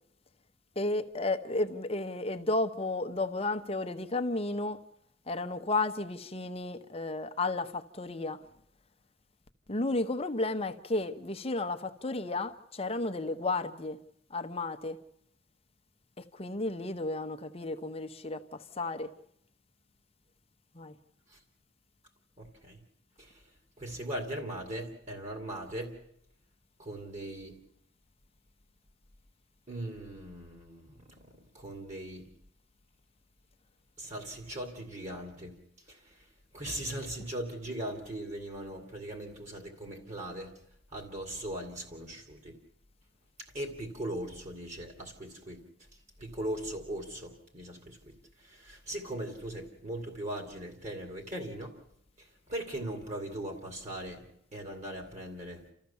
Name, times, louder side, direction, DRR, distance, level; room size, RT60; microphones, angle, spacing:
voice 1, 0.8-4.8 5.3-8.5 9.7-14.0 14.3-15.0 16.2-19.1 20.7-20.9, left 2 dB, 30° left, 0.9 m, -33 dB
voice 2, 22.4-22.8 23.2-23.4 23.8-26.0 26.8-27.6 29.7-32.3 34.0-35.6 35.9-36.2 36.5-40.6 40.9-42.6 43.5-45.6 46.2-51.8 52.2-54.2 54.5-55.6, right 1 dB, 35° right, 2.6 m, -39 dB
29.5 x 14.0 x 7.1 m
head